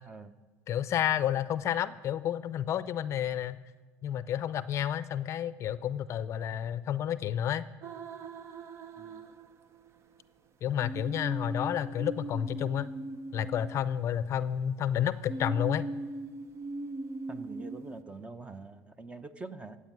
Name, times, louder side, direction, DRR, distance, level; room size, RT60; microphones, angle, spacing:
voice 1, 0.7-3.6 4.0-7.6 10.6-12.9 13.3-15.9, left 10 dB, 50° left, 15 dB, 0.5 m, -30 dB
sound 1, 7.8-10.0 10.8-14.5 15.3-18.0, right 2 dB, 45° right, 0.9 m, -40 dB
voice 2, 9.0-9.3 17.3-19.8, right 3 dB, 20° right, 11 dB, 0.8 m, -45 dB
14.5 x 8.3 x 7.5 m, 1.3 s
supercardioid pair, 100°, 6 cm